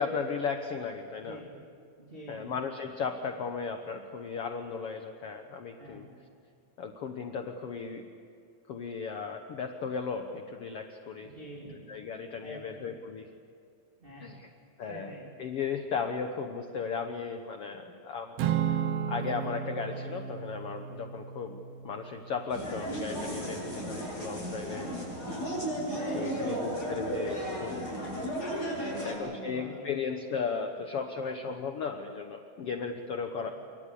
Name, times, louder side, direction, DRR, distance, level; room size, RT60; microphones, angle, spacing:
voice 1, 0.0-1.4 2.3-6.1 6.8-8.0 8.7-11.3 11.7-13.3 14.2-14.5 14.8-15.1 15.4-18.4 18.7-18.8 19.1-24.9 25.9-27.9 29.0-33.5, left 5 dB, 70° left, 6 dB, 1.3 m, -36 dB
voice 2, 1.2-1.5 2.0-2.5 5.8-6.1 11.2-12.0 12.4-12.9 14.0-14.3 14.8-15.2 23.2-23.5 25.9-26.7 28.8-30.1 33.4-33.5, right 1 dB, 15° right, -3 dB, 3.0 m, -45 dB
Acoustic guitar / Strum, 18.4-22.8, right 9 dB, 75° right, 1.5 m, -34 dB
sound 1, 22.5-29.1, right 1 dB, 25° left, 8.6 m, -34 dB
28.0 x 23.5 x 8.4 m, 2.3 s
omnidirectional pair, 4.3 m